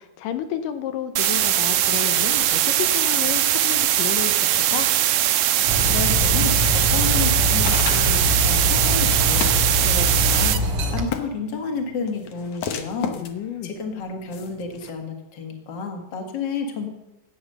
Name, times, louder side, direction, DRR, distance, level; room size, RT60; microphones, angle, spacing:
voice 1, 0.0-4.9 13.2-13.7, left 10 dB, 85° left, 8 dB, 2.5 m, -31 dB
sound 1, 1.2-10.6, right 12 dB, 85° right, 2.3 m, -20 dB
Dog, 5.7-11.0, left 1 dB, 60° right, 2.5 m, -23 dB
voice 2, 5.9-10.6 10.9-13.2 13.6-16.9, left 4 dB, 40° left, 4 dB, 2.0 m, -31 dB
sound 2, 6.6-14.9, left 8 dB, 65° left, 1.7 m, -35 dB
13.5 x 9.1 x 6.7 m, 0.95 s
omnidirectional pair, 3.7 m